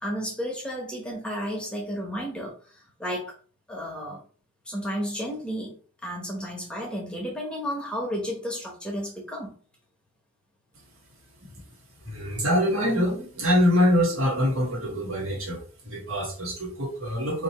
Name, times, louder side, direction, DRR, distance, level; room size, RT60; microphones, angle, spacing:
voice 1, 0.0-3.3 3.7-4.2 4.7-5.8 6.0-9.6, equal, 5° left, -2 dB, 1.0 m, -32 dB
voice 2, 12.0-17.4, equal, 70° right, -1 dB, 1.5 m, -24 dB
2.9 x 2.9 x 4.1 m, 0.40 s
head